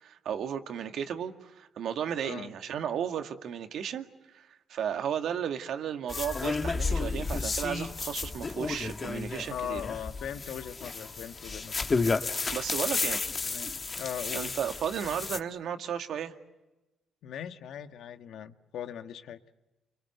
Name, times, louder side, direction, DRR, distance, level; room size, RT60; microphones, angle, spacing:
voice 1, 0.0-4.1 4.3-9.8 12.5-13.2 14.3-16.3, right 8 dB, 70° right, 6 dB, 2.1 m, -34 dB
voice 2, 2.2-2.5 9.4-12.0 13.4-14.6 17.2-19.4, left 9 dB, 75° left, 9 dB, 1.4 m, -40 dB
sound 1, 6.1-15.4, left 4 dB, 35° left, 1.6 m, -32 dB
30.0 x 23.5 x 8.1 m, 1.1 s
cardioid pair, 90°, 0 cm